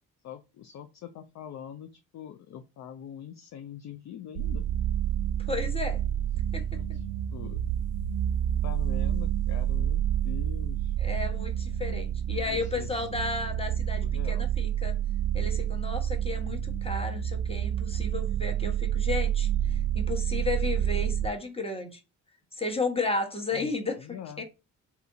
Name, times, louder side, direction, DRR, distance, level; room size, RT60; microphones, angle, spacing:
voice 1, 0.2-4.7 6.4-7.0 7.3-7.6 8.6-10.9 12.3-13.1 14.0-14.5 23.5-24.4, left 9 dB, 40° left, 0.4 m, -44 dB
sound 1, 4.4-21.3, right 10 dB, 75° right, 0.5 m, -29 dB
voice 2, 5.5-6.0 6.5-6.6 11.0-14.9 15.3-22.0 22.5-24.0 24.4-24.5, left 3 dB, 15° left, 1.0 m, -33 dB
3.3 x 2.8 x 2.6 m
hypercardioid pair, 40°, 45 cm